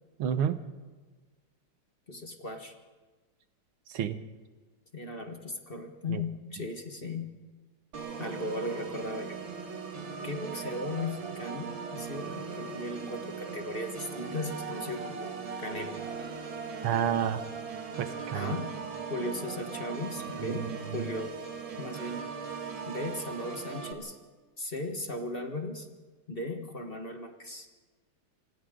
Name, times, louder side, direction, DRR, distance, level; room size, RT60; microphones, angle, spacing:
voice 1, 0.2-0.6 3.9-4.2 6.1-6.2 16.8-17.4 18.0-18.5 20.4-21.1, right 9 dB, 85° right, 10 dB, 1.9 m, -30 dB
voice 2, 2.1-2.8 4.9-7.3 8.2-9.4 10.2-15.3 15.6-16.0 18.3-18.8 19.1-21.4 21.8-22.3 22.9-24.2 24.6-25.9 26.3-27.7, left 2 dB, 30° left, 4 dB, 1.5 m, -37 dB
Organ, 7.9-23.9, right 5 dB, 65° right, 2.6 m, -39 dB
27.5 x 26.0 x 3.8 m, 1.4 s
omnidirectional pair, 2.3 m